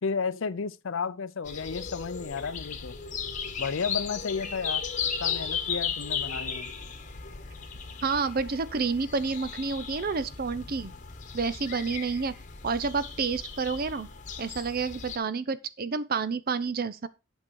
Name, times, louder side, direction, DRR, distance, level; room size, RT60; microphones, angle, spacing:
voice 1, 0.0-2.9 3.6-4.8 5.2-6.7, left 5 dB, 60° left, 0.5 m, -32 dB
sound 1, 1.5-15.2, left 6 dB, 35° left, 1.2 m, -36 dB
voice 2, 8.0-10.9 11.3-12.3 12.6-14.1 14.4-17.1, right 4 dB, 45° right, 0.6 m, -29 dB
8.6 x 6.4 x 4.6 m
head